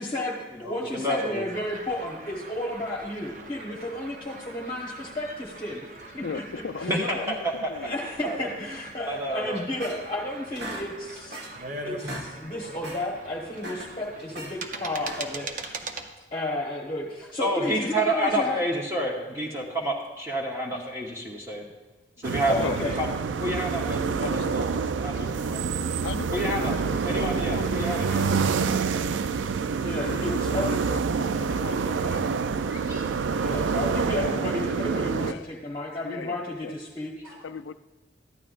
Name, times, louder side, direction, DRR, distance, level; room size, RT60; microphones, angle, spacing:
voice 1, 0.0-5.9 6.1-6.4 6.8-7.4 7.8-11.4 11.8-15.7 16.3-18.6 22.4-23.0 29.8-30.8 33.4-37.3, left 1 dB, 25° left, -3 dB, 1.1 m, -32 dB
voice 2, 0.5-1.5 6.9-7.3 7.6-7.7 8.2-8.5 9.1-9.6 17.4-21.6 22.2-22.6 23.0-23.1 23.4-24.7 25.0-25.6 26.3-28.3 28.6-28.9 32.7-33.1 37.2-37.4, right 1 dB, 15° right, -3 dB, 1.0 m, -29 dB
sound 1, 1.5-16.1, right 3 dB, 45° right, 0.7 m, -42 dB
voice 3, 6.2-7.9 22.6-22.8 24.2-24.6 26.0-28.5 30.3-32.4 35.2-35.5 36.0-36.7 37.4-37.7, left 5 dB, 85° left, 11 dB, 0.4 m, -37 dB
sound 2, 9.5-10.2 10.6-11.7 11.9-12.3 12.6-13.0 13.5-14.6 15.0-15.5, right 1 dB, 65° right, 1.6 m, -39 dB
sound 3, 22.2-35.3, right 5 dB, 85° right, 0.4 m, -27 dB
13.5 x 11.0 x 2.5 m, 1.2 s
head